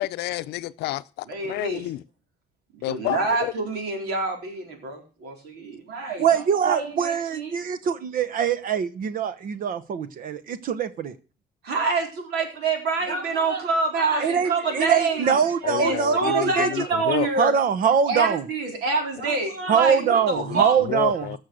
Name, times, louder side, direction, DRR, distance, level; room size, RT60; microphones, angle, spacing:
voice 1, 0.0-2.0 2.8-3.5 15.6-17.3 20.4-21.4, left 17 dB, 80° left, 0.6 m, -30 dB
voice 2, 1.3-1.8 2.7-7.6 11.6-17.5 18.1-20.8, right 3 dB, 80° right, 4.2 m, -27 dB
voice 3, 6.2-11.1 14.2-16.7 17.4-18.4 19.7-21.4, right 7 dB, 55° right, 1.0 m, -23 dB
16.5 x 6.5 x 6.5 m
cardioid pair, 110°, 17 cm